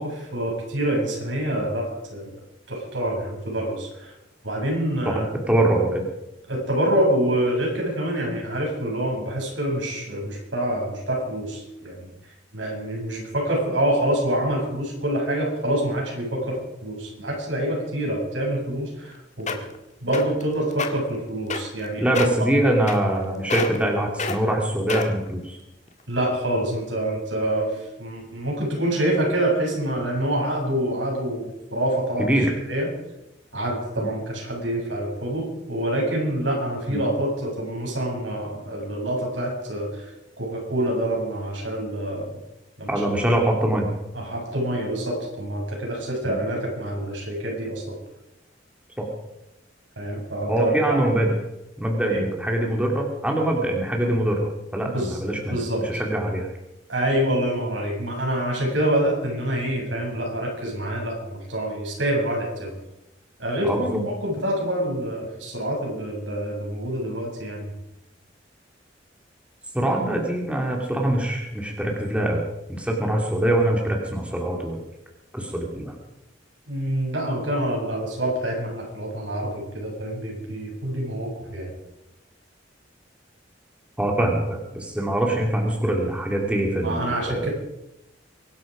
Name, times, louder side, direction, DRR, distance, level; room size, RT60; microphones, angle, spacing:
voice 1, 0.0-2.4 2.7-4.1 4.4-5.3 6.5-12.1 12.5-19.6 20.0-22.5 26.1-32.3 32.6-33.0 33.5-40.1 40.4-42.4 42.8-43.2 44.1-47.9 50.0-51.1 52.1-52.2 54.8-56.0 56.9-62.8 63.4-67.7 76.7-81.7 86.8-87.5, right 1 dB, 75° right, -1 dB, 7.7 m, -26 dB
voice 2, 5.5-6.0 22.0-25.6 32.2-32.5 34.0-34.1 36.9-37.0 42.9-43.9 46.2-46.4 49.0-49.1 50.5-51.3 51.8-56.5 63.6-64.0 69.7-72.4 72.7-74.8 75.3-76.0 84.0-87.5, right 1 dB, 5° right, 0 dB, 2.6 m, -23 dB
sound 1, 19.1-19.2 19.5-19.8 20.1-20.4 20.7-20.9 21.5-21.9 22.2-22.4 22.9-23.2 23.5-23.9 24.2-24.4 24.9-25.3 25.9-26.0, left 3 dB, 40° left, 1.8 m, -27 dB
24.0 x 11.5 x 5.1 m, 0.88 s
head